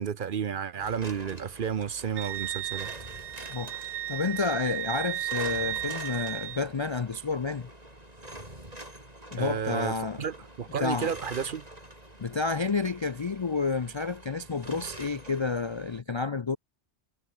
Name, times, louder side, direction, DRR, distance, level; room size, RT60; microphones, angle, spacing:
voice 1, 0.0-2.9 9.4-11.6, right 7 dB, 50° right, 0.8 m, -32 dB
sound 1, 0.8-16.0, right 1 dB, 35° right, 6.2 m, -46 dB
Wind instrument woodwind instrument, 2.2-6.6, right 13 dB, 80° right, 0.9 m, -34 dB
voice 2, 3.5-7.7 9.3-10.3 10.8-11.1 12.2-16.6, left 4 dB, 40° left, 0.4 m, -30 dB
omnidirectional pair, 1.2 m